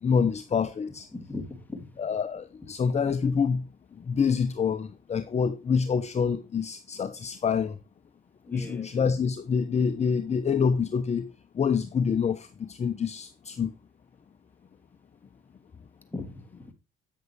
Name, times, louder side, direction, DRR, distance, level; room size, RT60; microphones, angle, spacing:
voice 1, 0.0-1.1 2.0-7.8 8.5-11.3 11.5-13.7, left 6 dB, 35° left, 0.8 m, -27 dB
voice 2, 1.1-2.0 8.4-8.9 16.1-16.7, left 2 dB, 10° left, 2.8 m, -39 dB
9.2 x 7.7 x 3.3 m
supercardioid pair, 75°, 20 cm